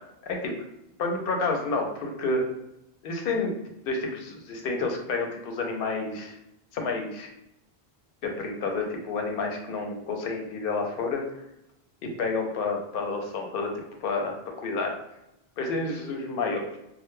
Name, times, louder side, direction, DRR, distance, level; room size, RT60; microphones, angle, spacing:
voice 1, 0.2-0.5 1.0-2.4 3.0-3.6 3.9-6.3 6.7-7.3 8.2-11.2 12.0-13.7 14.0-14.9 15.6-16.8, left 3 dB, 65° left, 2 dB, 0.7 m, -29 dB
2.1 x 2.0 x 3.0 m, 0.86 s
omnidirectional pair, 1.1 m